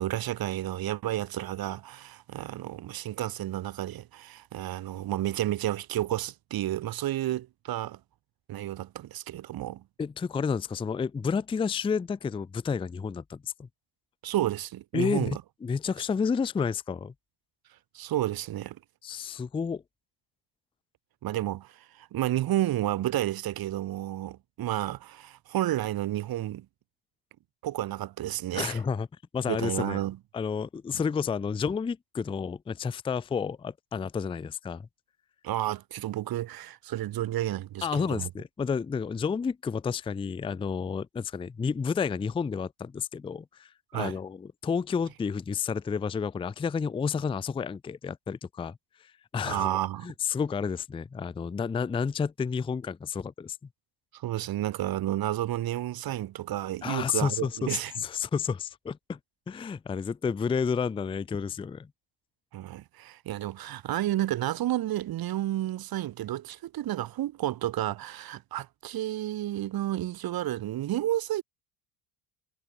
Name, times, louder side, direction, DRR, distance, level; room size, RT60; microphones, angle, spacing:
voice 1, 0.0-8.0 8.5-9.8 14.2-15.4 17.9-18.8 21.2-26.7 27.6-28.8 29.5-30.2 35.4-38.3 43.9-44.1 49.4-50.1 54.1-57.9 62.5-71.4, right 14 dB, 50° right, 0.9 m, -31 dB
voice 2, 10.0-13.7 14.9-17.1 19.0-19.8 28.5-29.1 29.3-30.0 30.3-34.9 37.8-49.8 50.0-53.6 56.8-59.2 59.5-61.9, left 6 dB, 10° left, 0.4 m, -31 dB
supercardioid pair, 80°, 46 cm